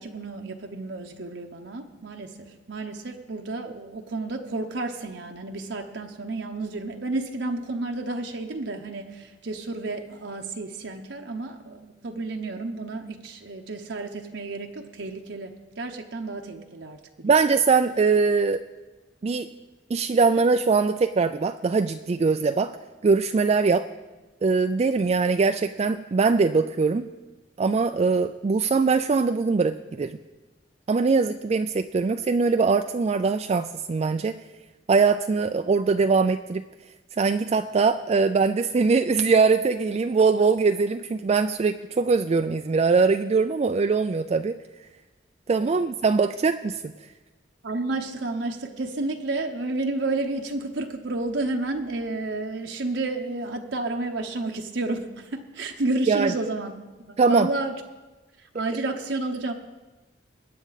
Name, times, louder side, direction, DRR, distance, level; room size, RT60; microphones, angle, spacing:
voice 1, 0.0-17.4 45.6-45.8 47.6-56.7 57.1-57.8 58.5-59.5, right 2 dB, 75° right, 2 dB, 0.9 m, -31 dB
voice 2, 17.2-18.6 19.2-19.5 19.9-22.7 23.0-23.9 24.4-27.1 27.6-30.2 30.9-34.4 34.9-36.6 37.2-44.6 45.5-46.9 56.1-56.3 57.2-57.5, right 4 dB, 35° right, 8 dB, 0.3 m, -22 dB
21.5 x 9.3 x 4.0 m, 1.2 s
head